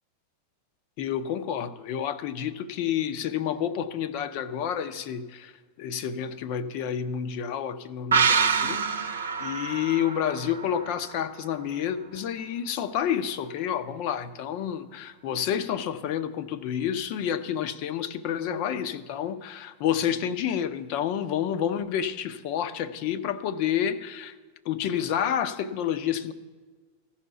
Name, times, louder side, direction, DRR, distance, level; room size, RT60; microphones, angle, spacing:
voice 1, 1.0-5.5 5.8-24.3 24.6-26.3, left 9 dB, 45° left, 0.7 m, -29 dB
sound 1, 8.1-11.6 11.9-12.0, right 6 dB, 70° right, 0.8 m, -26 dB
15.5 x 5.7 x 9.9 m
figure-of-eight pair, 90°, 0 cm